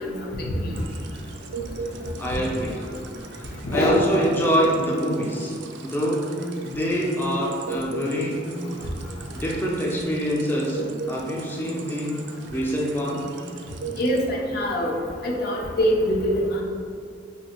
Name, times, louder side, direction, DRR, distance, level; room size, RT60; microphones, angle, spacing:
voice 1, 0.3-0.7 2.3-2.4 3.6-4.0 14.0-14.9 15.2-16.6, equal, 60° left, -2 dB, 0.6 m, -24 dB
sound 1, 0.7-14.3, right 4 dB, 75° right, 0.3 m, -38 dB
voice 2, 1.8-2.9 3.3-8.6 9.3-10.8 11.1-12.2 12.5-13.4, equal, 10° left, -4 dB, 0.3 m, -26 dB
2.6 x 2.4 x 4.2 m, 2.3 s
head